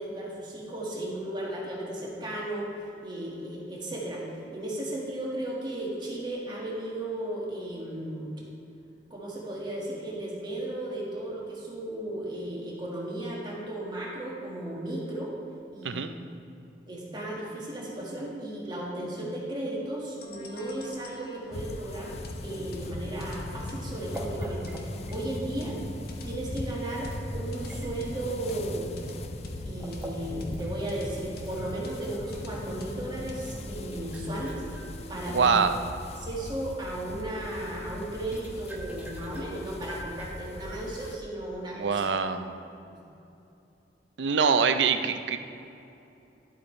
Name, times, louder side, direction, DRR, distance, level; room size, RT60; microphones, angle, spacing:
voice 1, 0.0-2.7 3.0-4.2 4.5-8.4 9.1-15.3 15.7-16.1 16.9-22.2 22.4-25.8 26.2-28.9 29.7-34.6 35.1-35.5 36.2-42.1 42.9-43.0, right 1 dB, 25° right, -4 dB, 1.8 m, -35 dB
sound 1, 20.2-35.6, left 1 dB, 60° left, 1.0 m, -42 dB
sound 2, 21.5-41.2, left 2 dB, 35° left, 0.4 m, -41 dB
sound 3, 22.7-37.1 37.6-41.1, equal, 10° right, 1.0 m, -44 dB
voice 2, 35.3-35.7 41.8-42.6 44.2-45.4, right 5 dB, 75° right, 9 dB, 0.5 m, -24 dB
11.5 x 8.1 x 3.2 m, 2.7 s
head